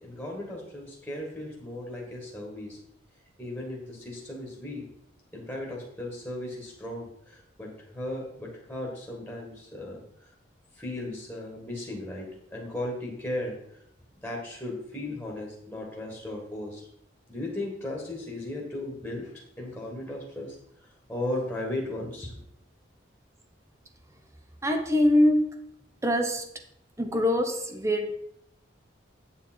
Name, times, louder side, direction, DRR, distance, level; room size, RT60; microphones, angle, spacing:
voice 1, 0.0-2.8 3.4-4.8 5.3-10.0 10.8-13.6 14.2-16.9 17.3-19.3 19.6-20.6 21.1-22.3, left 1 dB, 5° left, 1.9 m, -36 dB
voice 2, 24.6-25.6 26.0-26.5 27.0-28.1, left 1 dB, 15° right, 0.9 m, -23 dB
9.0 x 6.9 x 4.5 m
head